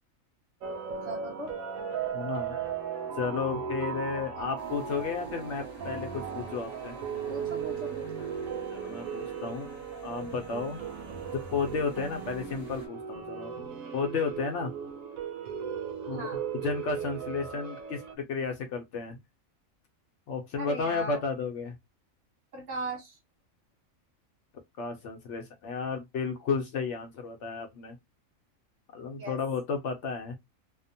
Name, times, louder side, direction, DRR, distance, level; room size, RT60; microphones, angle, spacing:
sound 1, 0.6-18.2, right 7 dB, 90° right, 1.0 m, -37 dB
voice 1, 1.1-1.6 4.4-4.5 7.3-8.1 16.1-16.4 20.6-21.2 22.5-23.2 29.2-29.4, right 2 dB, 60° right, 1.1 m, -38 dB
voice 2, 2.1-2.6 3.2-6.9 8.7-9.7 10.0-10.8 11.3-13.5 13.9-14.7 16.1-16.2 16.6-19.2 20.3-21.7 24.8-28.0 28.9-30.4, left 5 dB, 65° left, 0.8 m, -33 dB
sound 2, 4.6-12.9, right 3 dB, 25° right, 0.7 m, -48 dB
2.8 x 2.0 x 2.6 m
omnidirectional pair, 1.4 m